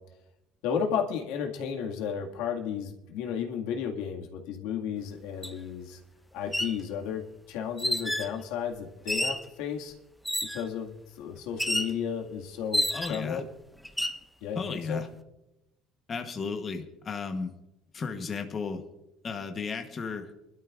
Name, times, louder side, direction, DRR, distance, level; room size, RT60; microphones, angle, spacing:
voice 1, 0.6-6.0 6.3-9.9 10.5-13.4 14.4-15.0, left 7 dB, 80° left, 2 dB, 1.9 m, -33 dB
sound 1, 5.4-5.5 6.4-6.8 7.8-8.3 9.1-9.5 10.2-10.7 11.6-12.0 12.7-13.3 13.8-14.2, equal, ahead, 0.5 m, -29 dB
voice 2, 12.9-13.4 14.5-15.1 16.1-17.5 17.9-18.8 19.2-20.3, left 5 dB, 20° left, 5 dB, 1.0 m, -34 dB
27.5 x 12.5 x 2.5 m, 0.91 s
cardioid pair, 175°, 0 cm